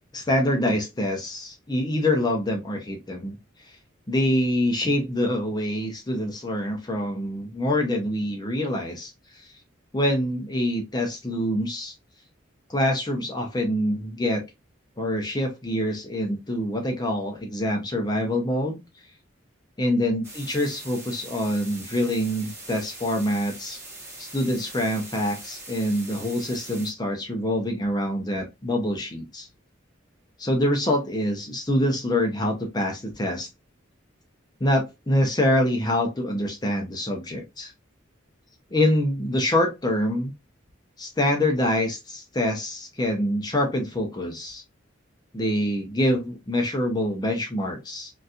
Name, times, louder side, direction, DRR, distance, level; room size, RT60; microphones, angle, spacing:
voice 1, 0.1-3.4 4.1-9.1 9.9-11.9 12.7-14.4 15.0-18.8 19.8-23.8 24.2-29.5 30.4-33.5 34.6-37.7 38.7-40.3 41.0-44.6 45.3-48.1, left 1 dB, 20° left, 2 dB, 0.6 m, -25 dB
sound 1, 20.2-26.9, right 2 dB, 15° right, 0.9 m, -42 dB
3.8 x 2.7 x 2.4 m, 0.24 s
head